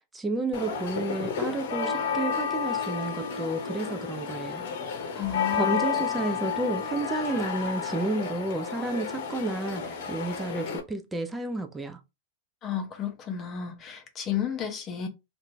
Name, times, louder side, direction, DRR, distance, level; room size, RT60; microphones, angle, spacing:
voice 1, 0.1-4.7 5.5-9.8 10.1-12.0, right 2 dB, 10° right, 0.5 m, -31 dB
sound 1, 0.5-10.8, left 6 dB, 60° left, 0.9 m, -31 dB
voice 2, 5.2-5.8 12.6-15.1, left 9 dB, 30° left, 0.8 m, -32 dB
2.8 x 2.6 x 3.3 m
hypercardioid pair, 100°, 0 cm